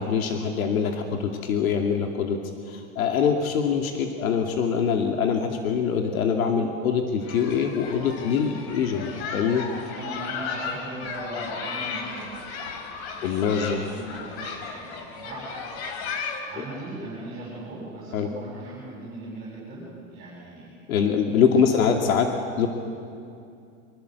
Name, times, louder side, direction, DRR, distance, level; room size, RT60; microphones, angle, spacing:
voice 1, 0.0-2.4 2.7-9.6 13.2-13.8 18.1-18.3 20.9-22.3 22.6-22.7, left 6 dB, 80° left, 3 dB, 2.6 m, -24 dB
sound 1, 7.2-16.4, left 5 dB, 50° left, 3.6 m, -35 dB
voice 2, 9.9-12.8 13.1-15.4 16.2-20.7 21.4-21.8, right 2 dB, 20° right, -6 dB, 7.9 m, -39 dB
25.5 x 23.0 x 8.2 m, 2.5 s
supercardioid pair, 165°, 41 cm